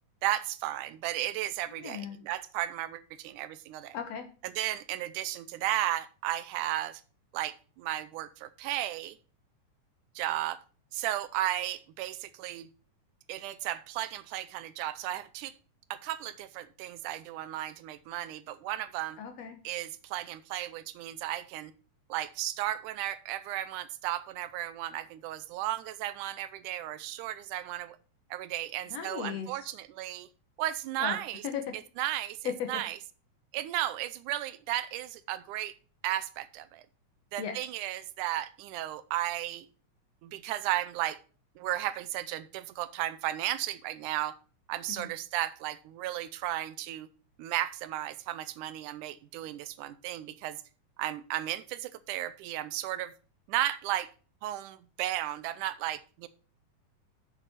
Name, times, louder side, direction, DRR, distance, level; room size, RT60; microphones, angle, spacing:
voice 1, 0.2-4.0 4.4-7.0 7.3-9.2 10.2-10.6 10.9-12.7 13.3-15.5 15.9-19.2 19.6-21.7 22.1-28.0 28.3-30.3 30.6-31.4 32.0-33.0 33.5-35.8 36.0-36.8 37.3-39.7 40.2-41.2 41.6-44.3 44.7-47.1 47.4-50.6 51.0-53.1 53.5-54.1 54.4-56.3, right 14 dB, 80° right, 13 dB, 2.0 m, -34 dB
voice 2, 1.8-2.2 3.9-4.3 19.2-19.6 28.9-29.5 31.0-31.2 31.4-31.7 32.5-32.8 37.4-37.6 45.0-45.1, left 8 dB, 65° left, 7 dB, 1.9 m, -36 dB
7.5 x 6.7 x 5.6 m, 0.37 s
omnidirectional pair, 3.7 m